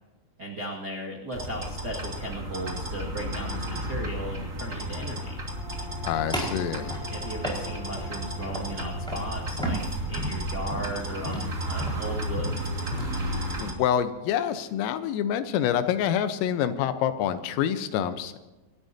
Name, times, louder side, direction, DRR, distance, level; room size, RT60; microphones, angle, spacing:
voice 1, 0.4-5.4 7.1-12.6, right 1 dB, 70° right, -4 dB, 0.9 m, -36 dB
sound 1, 1.3-13.7, equal, 20° right, 2.2 m, -33 dB
Brass instrument, 5.2-9.6, left 3 dB, 45° right, 7.2 m, -45 dB
voice 2, 6.0-7.0 13.6-18.4, left 9 dB, 90° left, 10 dB, 3.7 m, -27 dB
sound 2, 6.3-8.1 8.5-8.8 9.1-9.3 9.6-13.2, equal, ahead, 4.1 m, -34 dB
27.5 x 13.0 x 2.8 m, 1.1 s
omnidirectional pair, 5.8 m